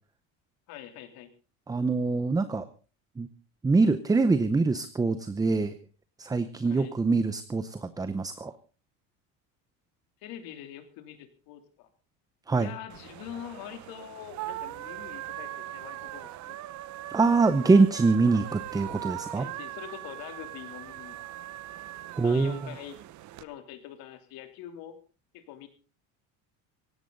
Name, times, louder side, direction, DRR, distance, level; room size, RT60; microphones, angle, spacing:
voice 1, 0.7-1.3 6.6-6.9 10.2-11.9 12.5-16.6 19.3-21.2 22.2-23.0 23.4-25.0 25.3-25.7, left 10 dB, 60° left, 8 dB, 3.2 m, -44 dB
voice 2, 1.7-2.7 3.2-3.3 3.6-5.8 6.2-8.5 12.5-12.7 17.1-19.5 22.2-22.6, right 3 dB, 10° right, 12 dB, 0.7 m, -24 dB
sound 1, 12.9-23.4, right 14 dB, 45° right, 1.1 m, -40 dB
17.5 x 17.0 x 3.9 m, 0.34 s
cardioid pair, 140°, 39 cm